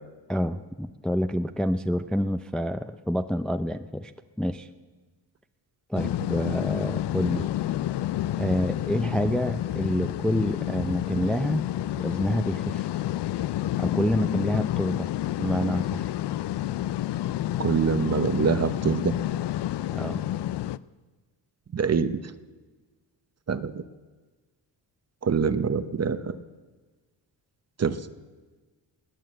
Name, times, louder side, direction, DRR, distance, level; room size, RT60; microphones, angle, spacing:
voice 1, 0.3-4.1 4.4-4.7 5.9-7.5 8.4-11.6 12.0-12.9 13.8-15.1 15.4-16.1 19.9-20.2, equal, ahead, 9 dB, 0.4 m, -27 dB
sound 1, 5.9-20.8, left 13 dB, 70° left, 0.5 m, -29 dB
voice 2, 17.6-19.1 21.7-22.2 23.5-23.8 25.2-26.4 27.8-28.0, right 6 dB, 35° right, 12 dB, 0.9 m, -25 dB
19.5 x 9.3 x 7.8 m, 1.3 s
cardioid pair, 100°, 43 cm